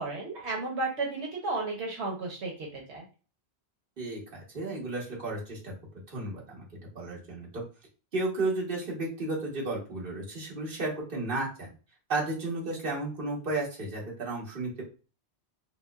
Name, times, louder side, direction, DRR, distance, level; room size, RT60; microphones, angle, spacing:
voice 1, 0.0-3.0, right 3 dB, 85° right, 0 dB, 1.1 m, -33 dB
voice 2, 4.0-5.7 6.1-6.6 6.9-7.6 8.1-11.7 12.1-14.8, right 2 dB, 55° right, -3 dB, 1.3 m, -33 dB
5.4 x 2.0 x 2.3 m, 0.35 s
omnidirectional pair, 1.1 m